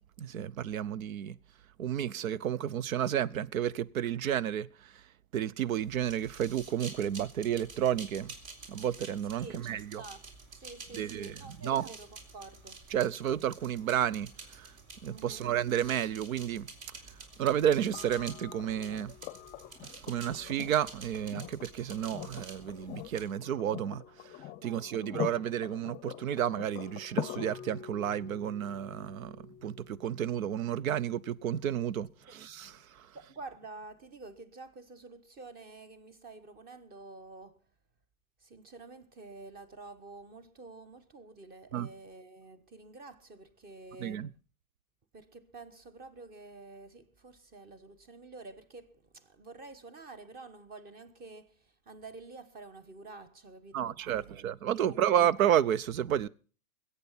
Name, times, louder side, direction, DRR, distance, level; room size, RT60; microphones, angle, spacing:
voice 1, 0.2-1.4 1.8-5.0 5.3-8.3 8.7-10.0 10.9-11.9 12.9-14.7 15.0-16.7 17.4-19.1 19.8-33.1 41.7-41.9 44.0-44.3 53.7-56.3, right 10 dB, 75° right, 0.8 m, -31 dB
sound 1, 5.8-23.3, right 3 dB, 50° right, 3.9 m, -50 dB
voice 2, 9.4-10.2 10.6-12.8 15.1-15.5 24.6-25.1 33.1-37.6 38.4-44.3 45.1-54.5 54.7-54.9, right 3 dB, 20° right, 1.2 m, -49 dB
sound 2, 17.9-31.9 33.6-33.7, left 12 dB, 25° left, 0.7 m, -44 dB
21.0 x 8.4 x 5.8 m
hypercardioid pair, 135°, 42 cm